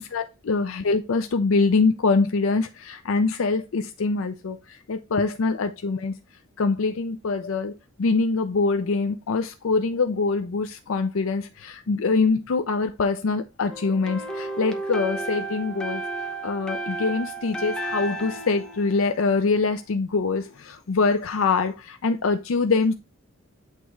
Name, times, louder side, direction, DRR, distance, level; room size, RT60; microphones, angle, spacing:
voice 1, 0.0-4.6 4.9-6.1 6.6-7.7 8.0-16.0 16.4-22.9, left 4 dB, 80° left, 0.5 m, -24 dB
sound 1, 13.7-19.7, right 2 dB, 5° left, 0.8 m, -33 dB
8.3 x 3.0 x 4.6 m
head